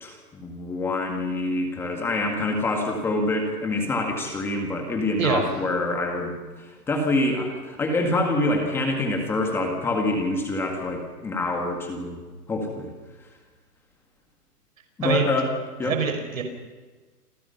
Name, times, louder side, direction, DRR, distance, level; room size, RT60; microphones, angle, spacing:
voice 1, 0.0-12.2 12.5-12.9 15.0-15.5 15.8-16.0, left 2 dB, 5° left, 3 dB, 1.7 m, -26 dB
voice 2, 15.0-15.3 15.8-16.4, right 6 dB, 55° right, 5 dB, 5.6 m, -24 dB
28.5 x 26.5 x 5.7 m, 1.3 s
hypercardioid pair, 175°, 48 cm